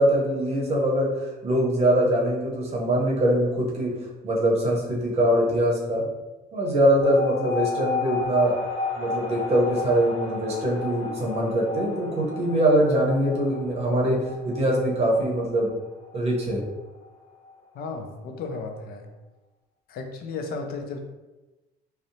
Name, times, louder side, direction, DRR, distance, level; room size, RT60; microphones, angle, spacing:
voice 1, 0.0-3.9 4.2-6.1 6.5-8.6 8.9-15.7 16.1-16.6, right 1 dB, 40° right, -3 dB, 0.7 m, -23 dB
sound 1, 7.0-17.9, left 4 dB, 35° left, 0.7 m, -33 dB
voice 2, 17.7-19.1 19.9-21.0, left 4 dB, 65° left, 5 dB, 0.4 m, -34 dB
2.7 x 2.0 x 2.6 m, 1.1 s
cardioid pair, 110°, 17 cm